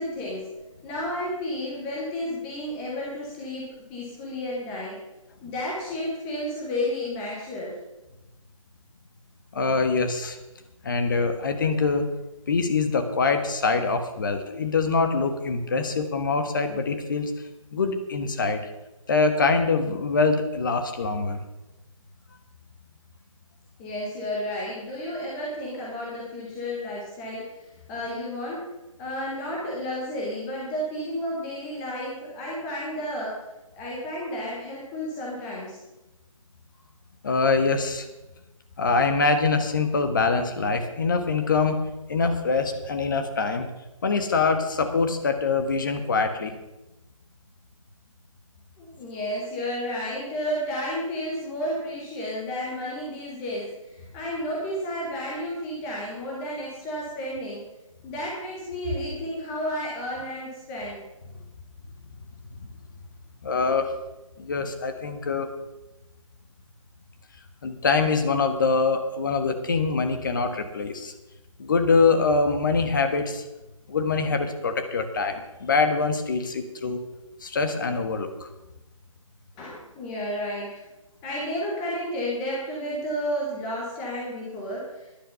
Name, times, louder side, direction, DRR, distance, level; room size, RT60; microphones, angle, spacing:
voice 1, 0.0-5.0 5.4-7.7 23.8-28.7 29.0-33.4 33.7-35.8 48.8-57.6 58.0-61.0 79.6-80.8 81.2-85.1, equal, 5° left, -4 dB, 0.4 m, -32 dB
voice 2, 9.5-10.4 10.8-12.0 12.5-17.3 17.7-18.6 19.1-21.4 37.2-38.1 38.8-41.8 42.1-43.7 44.0-46.5 63.4-63.9 64.4-65.5 67.6-71.1 71.6-73.4 73.9-77.0 77.4-78.3, left 4 dB, 35° left, 7 dB, 1.3 m, -24 dB
12.0 x 10.5 x 5.5 m, 1.0 s
figure-of-eight pair, 160°, 18 cm